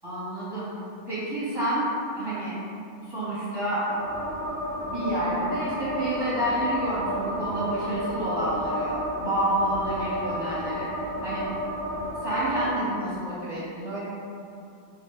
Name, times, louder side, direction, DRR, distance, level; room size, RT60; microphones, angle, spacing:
voice 1, 0.0-0.7 1.1-2.5 3.1-3.8 4.9-10.9 11.2-11.4 12.2-14.0, right 1 dB, 20° right, -12 dB, 0.8 m, -29 dB
sound 1, 3.8-12.7, equal, 40° left, 1.1 m, -32 dB
4.4 x 2.5 x 3.4 m, 2.7 s
omnidirectional pair, 1.9 m